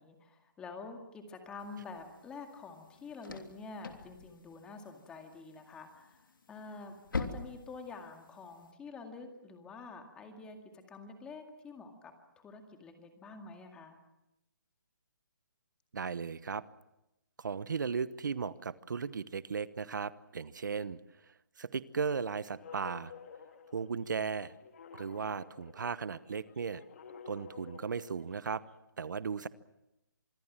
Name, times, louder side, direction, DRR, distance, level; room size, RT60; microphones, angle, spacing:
voice 1, 0.0-14.0, left 4 dB, 10° left, 5 dB, 2.1 m, -48 dB
sound 1, 1.6-8.7, left 4 dB, 80° left, 3.3 m, -45 dB
voice 2, 15.9-16.6 17.4-21.0 21.6-23.1 23.7-24.5 24.9-26.8 27.3-28.6 29.0-29.5, right 5 dB, 65° right, 16 dB, 1.1 m, -36 dB
sound 2, 21.9-28.8, left 6 dB, 40° left, 2.2 m, -53 dB
26.0 x 22.5 x 7.4 m, 0.90 s
hypercardioid pair, 165°, 11 cm